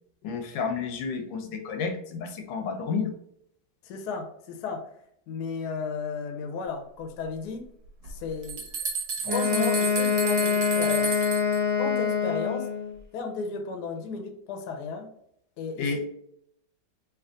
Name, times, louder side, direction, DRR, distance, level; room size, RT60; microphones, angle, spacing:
voice 1, 0.2-3.1 15.8-16.1, left 5 dB, 85° left, 6 dB, 1.4 m, -31 dB
voice 2, 3.8-4.8 5.3-7.6 8.1-8.7 9.2-11.2 11.8-12.7 13.1-15.1 15.6-16.1, left 4 dB, 70° left, 4 dB, 1.1 m, -34 dB
sound 1, 8.1-8.2 8.4-11.6, right 4 dB, 60° right, 1.4 m, -32 dB
Wind instrument woodwind instrument, 9.2-13.0, left 6 dB, 15° right, 0.3 m, -25 dB
3.4 x 3.0 x 3.7 m, 0.73 s
omnidirectional pair, 2.0 m